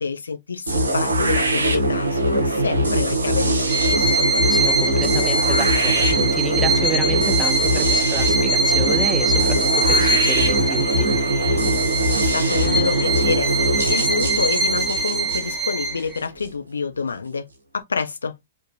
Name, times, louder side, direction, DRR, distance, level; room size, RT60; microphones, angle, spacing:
voice 1, 0.0-4.3 12.3-17.5 17.7-18.3, left 5 dB, 80° left, 0.4 m, -27 dB
sound 1, 0.7-16.5, right 1 dB, 85° right, 0.6 m, -21 dB
Bowed string instrument, 3.7-16.2, right 2 dB, 20° right, 0.8 m, -23 dB
voice 2, 4.4-11.2, right 3 dB, 5° right, 0.4 m, -31 dB
3.0 x 2.1 x 2.5 m
figure-of-eight pair, 105°, 0 cm